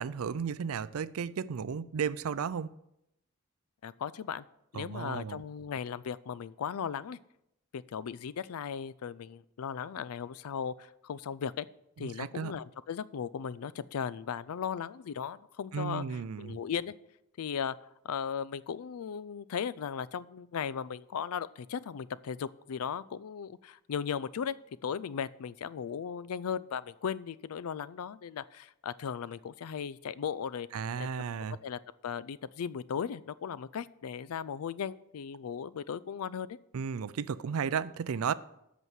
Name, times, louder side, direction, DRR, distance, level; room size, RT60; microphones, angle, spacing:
voice 1, 0.0-2.7 4.7-5.4 12.0-12.5 15.7-16.6 30.7-31.6 36.7-38.3, right 6 dB, 80° right, 0.4 m, -34 dB
voice 2, 3.8-4.4 4.7-7.2 7.7-11.7 12.0-16.9 17.4-17.8 18.0-24.6 24.8-31.1 31.6-36.6, left 7 dB, 85° left, 0.4 m, -37 dB
8.2 x 6.2 x 7.3 m
head